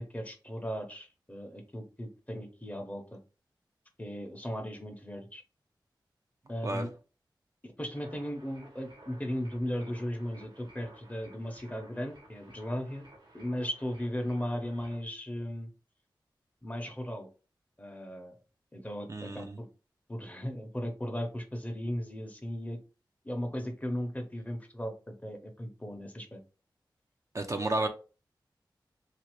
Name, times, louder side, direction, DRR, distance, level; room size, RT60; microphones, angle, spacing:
voice 1, 0.0-3.2 4.0-5.4 6.5-6.9 7.6-13.1 13.3-15.7 16.6-17.3 17.8-18.4 18.7-19.7 20.1-22.8 23.2-26.4, equal, 20° left, 4 dB, 0.7 m, -37 dB
sound 1, 7.9-15.0, right 1 dB, 70° right, 1.0 m, -55 dB
voice 2, 19.1-19.6 27.3-27.9, right 2 dB, 40° right, 5 dB, 0.5 m, -32 dB
2.8 x 2.5 x 3.0 m, 0.35 s
cardioid pair, 40°, 8 cm